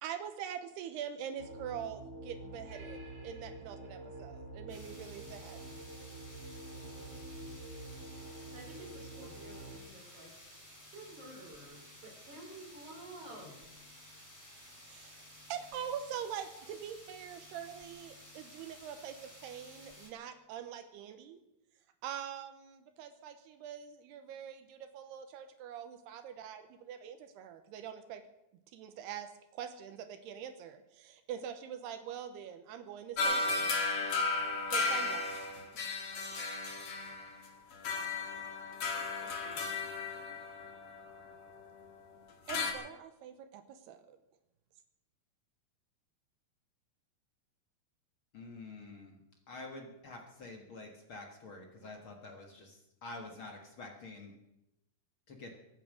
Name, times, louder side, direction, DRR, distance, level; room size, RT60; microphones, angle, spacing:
voice 1, 0.0-5.6 14.5-15.2 15.5-21.4 22.0-28.2 28.7-33.7 34.7-35.3 42.5-44.2, right 9 dB, 80° right, 9 dB, 2.9 m, -44 dB
sound 1, 1.4-9.8, right 2 dB, 25° right, 2.2 m, -47 dB
sound 2, 4.7-20.1, left 1 dB, 5° left, 2.5 m, -54 dB
voice 2, 8.5-10.3 10.9-13.7 38.9-39.6 40.1-40.3, right 1 dB, 45° right, -2 dB, 6.2 m, -51 dB
sound 3, 33.2-41.8 42.5-42.7, left 3 dB, 45° left, 2.3 m, -35 dB
voice 3, 48.3-49.2 49.5-54.3 55.3-55.5, left 2 dB, 65° left, 3 dB, 1.3 m, -48 dB
23.5 x 9.0 x 6.4 m, 0.88 s
omnidirectional pair, 4.8 m